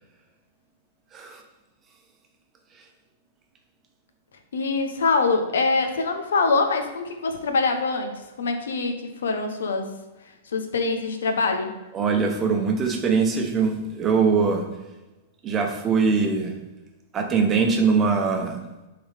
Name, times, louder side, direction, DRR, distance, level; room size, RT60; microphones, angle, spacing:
voice 1, 4.5-8.1 8.4-9.9 10.5-11.7, left 4 dB, 85° left, 5 dB, 0.9 m, -24 dB
voice 2, 11.9-14.6 15.4-16.6 17.1-18.6, right 5 dB, 25° right, 3 dB, 1.0 m, -22 dB
7.0 x 3.9 x 3.6 m, 1.1 s
hypercardioid pair, 125°, 0 cm